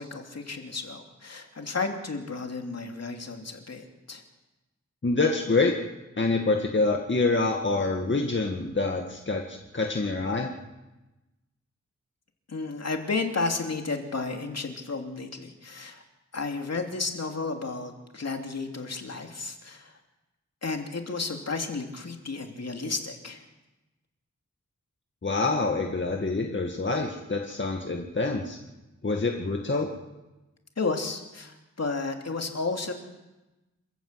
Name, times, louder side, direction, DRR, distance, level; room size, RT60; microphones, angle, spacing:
voice 1, 0.0-4.2 12.5-16.0 16.3-19.9 20.6-23.4 30.8-32.9, left 3 dB, 60° left, 3 dB, 2.9 m, -32 dB
voice 2, 5.0-5.7 6.2-10.5 25.2-28.6 29.0-29.9, left 3 dB, 40° left, 1 dB, 2.0 m, -26 dB
27.5 x 14.5 x 8.2 m, 1.1 s
wide cardioid pair, 100°, 29 cm